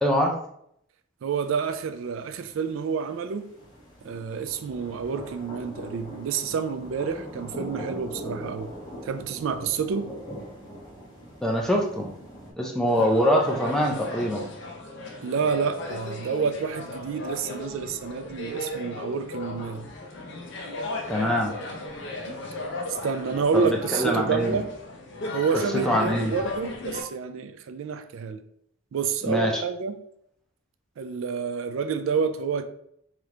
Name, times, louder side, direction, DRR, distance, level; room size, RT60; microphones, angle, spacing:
voice 1, 0.0-0.4 11.4-12.1 12.6-14.5 21.1-21.5 23.7-24.6 25.9-26.3 29.2-29.6, equal, 5° left, 0 dB, 0.4 m, -24 dB
voice 2, 1.2-3.5 4.0-8.7 9.0-10.1 13.0-13.1 15.2-19.9 22.3-22.4 23.0-24.7 25.3-28.4 28.9-30.0 31.0-32.6, right 6 dB, 75° right, 9 dB, 0.3 m, -29 dB
sound 1, 1.3-12.5, equal, 20° left, 1.1 m, -41 dB
sound 2, 12.9-27.0, left 2 dB, 55° left, 0.6 m, -36 dB
3.3 x 2.9 x 3.6 m, 0.72 s
head